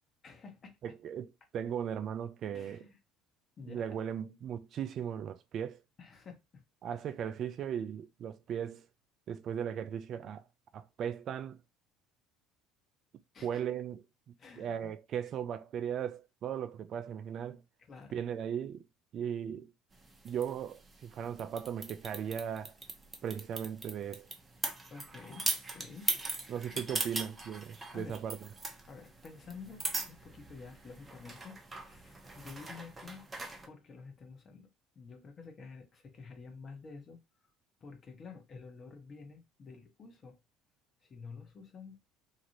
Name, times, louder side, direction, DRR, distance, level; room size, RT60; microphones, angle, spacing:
voice 1, 0.2-0.8 2.5-3.0 3.6-3.8 6.0-6.6 13.3-13.6 14.4-14.9 17.8-18.2 24.9-26.8 27.9-28.2 28.9-33.2 33.7-34.7 34.9-37.2 37.8-40.4 41.0-42.0, left 5 dB, 40° left, 1.0 m, -50 dB
voice 2, 0.8-2.8 3.7-5.8 6.8-8.9 9.3-10.4 10.7-11.6 13.4-14.0 14.6-17.6 18.1-18.8 19.1-19.7 20.2-22.7 23.2-24.3 26.5-28.4, right 8 dB, 50° right, 0.3 m, -37 dB
sound 1, 19.9-33.7, right 3 dB, 25° right, 0.9 m, -40 dB
2.9 x 2.5 x 2.9 m
hypercardioid pair, 65°, 0 cm